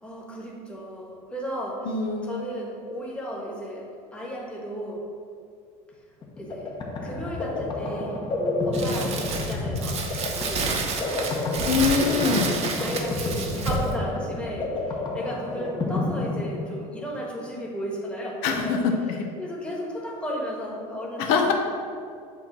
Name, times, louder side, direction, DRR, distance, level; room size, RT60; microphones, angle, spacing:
voice 1, 0.0-1.9 2.2-5.1 6.4-6.7 7.0-8.2 8.7-11.3 12.1-12.5 12.8-18.8 19.4-21.5, equal, 5° left, -2 dB, 1.3 m, -35 dB
voice 2, 1.8-2.5 11.6-12.5 18.4-19.3 21.2-21.5, left 5 dB, 80° left, 3 dB, 0.8 m, -24 dB
sound 1, 6.2-17.1, left 2 dB, 30° left, 1.0 m, -30 dB
Crumpling crinkling, 8.7-13.9, right 4 dB, 45° right, 0.9 m, -29 dB
8.1 x 3.1 x 6.0 m, 2.3 s
cardioid pair, 125°, 15 cm